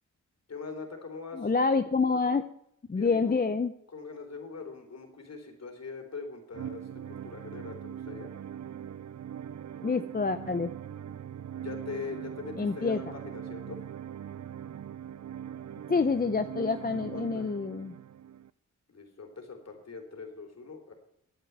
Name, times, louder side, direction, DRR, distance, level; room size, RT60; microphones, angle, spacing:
voice 1, 0.5-1.5 2.9-3.4 3.9-8.3 11.5-13.8 16.6-16.7 16.9-17.5 18.9-20.9, left 4 dB, 55° left, 3 dB, 3.6 m, -42 dB
voice 2, 1.3-2.4 2.9-3.7 9.8-10.7 12.6-13.0 15.9-17.9, left 4 dB, 30° left, 9 dB, 0.7 m, -27 dB
sound 1, 6.5-18.5, right 9 dB, 60° right, 0.5 m, -41 dB
11.0 x 9.2 x 9.2 m, 0.73 s
wide cardioid pair, 110°, 31 cm